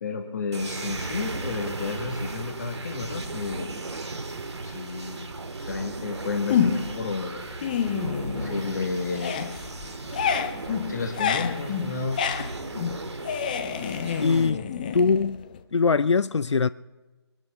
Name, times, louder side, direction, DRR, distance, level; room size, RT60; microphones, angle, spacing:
voice 1, 0.0-3.7 4.6-5.3 5.6-7.5 8.4-9.5 10.9-12.2, left 4 dB, 40° left, 1.7 m, -31 dB
sound 1, 0.5-14.5, right 3 dB, 75° right, 1.9 m, -36 dB
sound 2, 6.5-7.0 7.4-8.8 9.1-15.6, left 7 dB, 20° left, 0.6 m, -28 dB
voice 2, 14.2-14.6 14.9-15.5 15.7-16.7, left 5 dB, 80° left, 0.4 m, -22 dB
23.5 x 12.5 x 3.5 m
figure-of-eight pair, 155°, 15 cm